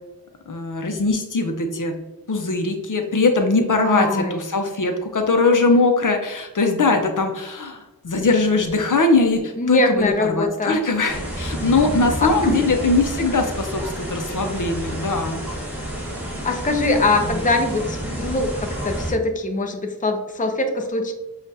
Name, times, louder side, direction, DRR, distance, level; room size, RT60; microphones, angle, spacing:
voice 1, 0.5-2.0 2.3-15.4 17.2-17.4, left 3 dB, 60° left, 4 dB, 0.7 m, -21 dB
voice 2, 3.7-4.4 9.6-10.8 12.2-12.5 16.4-21.1, left 2 dB, 20° left, 4 dB, 0.6 m, -22 dB
sound 1, 11.1-19.1, equal, 5° right, 1.3 m, -29 dB
7.2 x 2.4 x 2.7 m, 1.1 s
wide cardioid pair, 60°, 36 cm